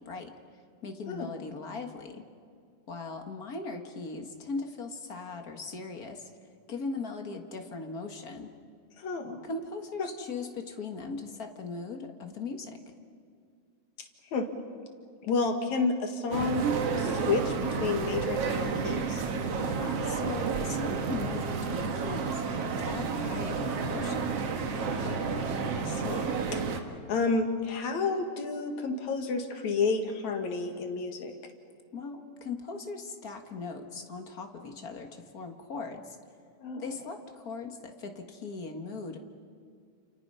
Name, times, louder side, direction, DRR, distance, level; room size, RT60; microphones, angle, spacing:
voice 1, 0.0-2.2 2.9-6.3 6.7-8.5 9.4-12.8 19.6-22.4 22.8-24.4 31.9-36.2 36.8-39.2, left 4 dB, 40° left, 4 dB, 1.6 m, -39 dB
voice 2, 9.0-9.5 10.0-10.1 14.3-14.5 15.2-16.6 17.0-19.2 24.9-25.5 25.8-26.2 26.5-26.7 27.1-31.3 36.6-36.8, left 4 dB, 70° left, 5 dB, 3.1 m, -30 dB
sound 1, 16.3-26.8, right 5 dB, 55° right, 2.4 m, -31 dB
29.5 x 28.5 x 5.6 m, 2.3 s
omnidirectional pair, 3.4 m